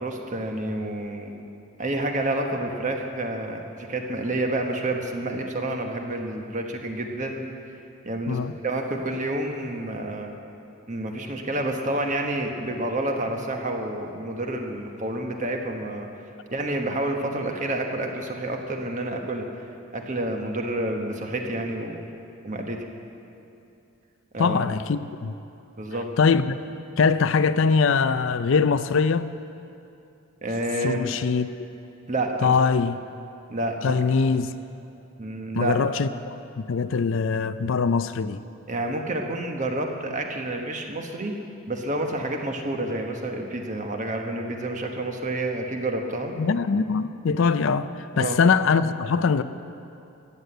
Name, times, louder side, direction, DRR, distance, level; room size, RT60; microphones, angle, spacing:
voice 1, 0.0-1.3 1.8-7.5 8.0-10.3 10.9-16.1 16.5-19.4 19.9-22.0 22.4-22.8 24.3-24.6 25.8-26.1 30.4-31.1 32.1-32.5 33.5-34.3 35.2-35.8 38.7-41.3 41.7-46.3 48.2-48.4, right 1 dB, 35° right, 1.3 m, -29 dB
voice 2, 24.4-25.3 26.2-26.6 27.0-29.3 30.8-31.5 32.4-33.0 33.8-34.5 35.5-36.1 36.6-38.4 46.4-49.4, left 5 dB, 60° left, 0.4 m, -22 dB
14.5 x 9.7 x 8.0 m
head